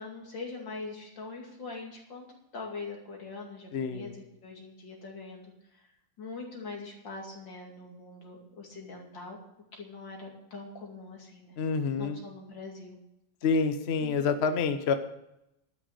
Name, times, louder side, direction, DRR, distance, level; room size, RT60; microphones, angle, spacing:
voice 1, 0.0-2.3 2.5-5.9 6.2-9.4 9.7-11.6 12.0-13.0, left 3 dB, 70° left, 0 dB, 3.2 m, -43 dB
voice 2, 3.7-4.1 11.6-12.2 13.4-14.9, left 5 dB, 50° left, 8 dB, 0.8 m, -27 dB
12.5 x 6.5 x 8.0 m, 0.84 s
omnidirectional pair, 2.1 m